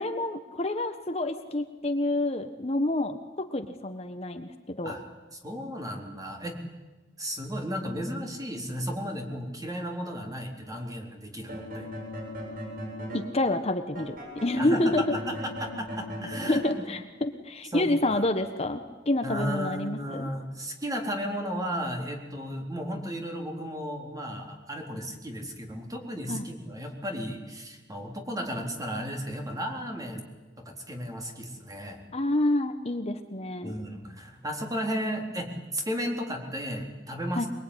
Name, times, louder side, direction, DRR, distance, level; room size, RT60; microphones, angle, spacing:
voice 1, 0.0-4.9 13.1-15.2 16.5-20.3 26.3-26.5 32.1-33.8 37.4-37.5, left 1 dB, 35° left, 7 dB, 1.3 m, -28 dB
voice 2, 5.3-6.5 7.2-11.9 14.6-15.3 15.6-16.6 17.7-18.3 19.2-30.2 30.9-32.0 33.6-37.5, equal, 20° right, 2 dB, 4.0 m, -34 dB
sound 1, 11.4-13.3 13.9-16.8, equal, 50° right, 7.7 m, -38 dB
23.5 x 23.0 x 10.0 m, 1.2 s
head